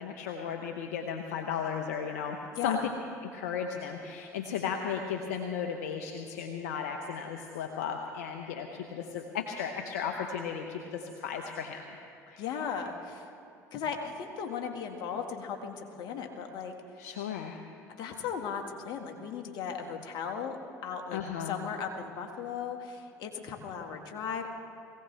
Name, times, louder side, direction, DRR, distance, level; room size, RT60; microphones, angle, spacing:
voice 1, 0.0-2.4 2.6-2.8 3.2-11.8 12.3-12.5 17.0-17.6 21.1-21.6, left 7 dB, 80° left, 4 dB, 0.9 m, -35 dB
voice 2, 12.4-13.2 13.7-16.7 18.0-20.6 20.8-21.2 21.5-24.5, left 6 dB, 60° left, 3 dB, 1.9 m, -36 dB
22.0 x 17.0 x 3.4 m, 2.8 s
hypercardioid pair, 70°, 8 cm